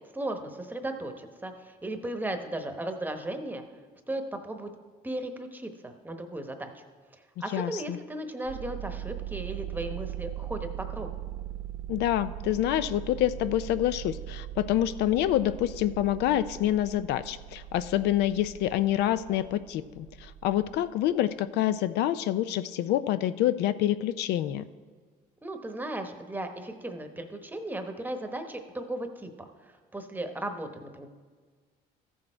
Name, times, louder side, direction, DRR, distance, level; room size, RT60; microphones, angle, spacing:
voice 1, 0.1-3.6 4.1-4.7 5.0-6.8 7.1-11.1 25.4-31.1, right 1 dB, 10° right, 6 dB, 0.9 m, -36 dB
voice 2, 7.5-8.0 11.9-20.1 20.4-24.6, left 12 dB, 80° left, 13 dB, 0.4 m, -27 dB
sound 1, 8.4-21.1, right 12 dB, 85° right, 0.4 m, -40 dB
14.0 x 6.4 x 4.4 m, 1.5 s
cardioid pair, 110°, 17 cm